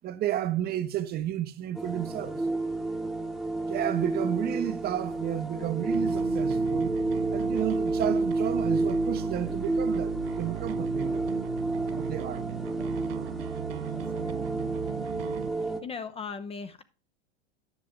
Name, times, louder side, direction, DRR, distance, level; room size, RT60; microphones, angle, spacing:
voice 1, 0.0-2.4 3.7-6.9 7.3-11.2 11.9-12.5, right 12 dB, 30° right, 0.7 m, -32 dB
sound 1, 1.7-15.8, right 2 dB, ahead, 1.0 m, -30 dB
Bass guitar, 5.9-15.5, right 15 dB, 60° right, 0.5 m, -38 dB
voice 2, 13.8-14.5 15.5-16.8, left 5 dB, 20° left, 0.5 m, -40 dB
10.5 x 6.2 x 3.5 m
hypercardioid pair, 105°, 33 cm